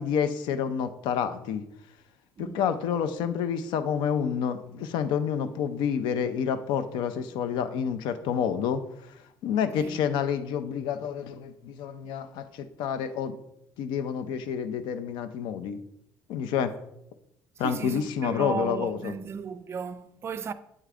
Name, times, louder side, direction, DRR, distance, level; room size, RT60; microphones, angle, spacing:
voice 1, 0.0-1.6 2.4-8.8 9.4-13.4 13.8-15.8 16.3-16.7 17.6-19.1, left 8 dB, 85° left, 0.5 m, -29 dB
voice 2, 17.6-20.5, right 6 dB, 35° right, 0.4 m, -35 dB
8.4 x 3.6 x 3.4 m
cardioid pair, 135°, 8 cm